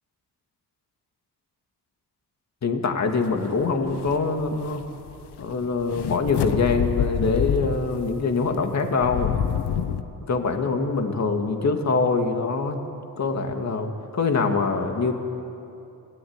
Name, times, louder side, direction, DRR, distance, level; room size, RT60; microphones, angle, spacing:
voice 1, 2.6-4.9 5.4-9.4 10.3-12.8 13.2-15.1, left 4 dB, 40° left, 4 dB, 2.4 m, -24 dB
sound 1, 3.6-3.7 3.9-8.0 8.5-10.0, left 8 dB, 75° left, 1.3 m, -27 dB
28.5 x 17.5 x 9.7 m, 2.8 s
cardioid pair, 120°, 40 cm